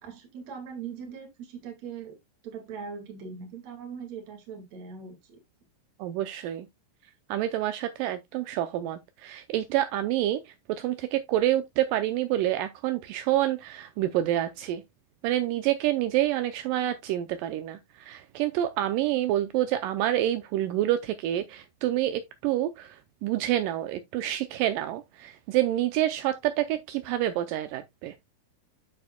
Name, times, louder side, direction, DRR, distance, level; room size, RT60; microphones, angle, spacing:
voice 1, 0.0-2.2 2.4-5.4, right 6 dB, 50° right, 2.9 m, -40 dB
voice 2, 6.0-6.7 7.3-10.4 10.7-14.8 15.2-22.9 23.2-28.1, right 13 dB, 80° right, 2.1 m, -27 dB
8.7 x 7.0 x 2.2 m
omnidirectional pair, 4.3 m